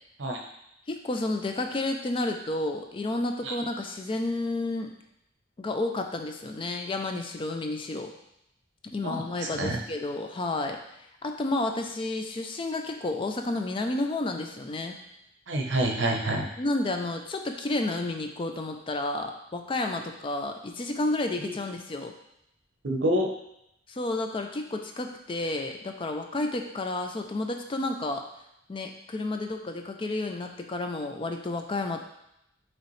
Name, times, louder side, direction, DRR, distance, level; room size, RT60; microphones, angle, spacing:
voice 1, 0.9-4.9 5.6-8.1 8.9-10.8 11.2-15.0 16.6-22.1 23.9-28.2 28.7-32.0, left 2 dB, 25° left, 4 dB, 0.3 m, -31 dB
voice 2, 9.0-9.8 15.5-16.5 21.4-21.6 22.8-23.3, right 1 dB, 70° right, 2 dB, 0.8 m, -27 dB
5.5 x 3.0 x 3.1 m, 0.80 s
head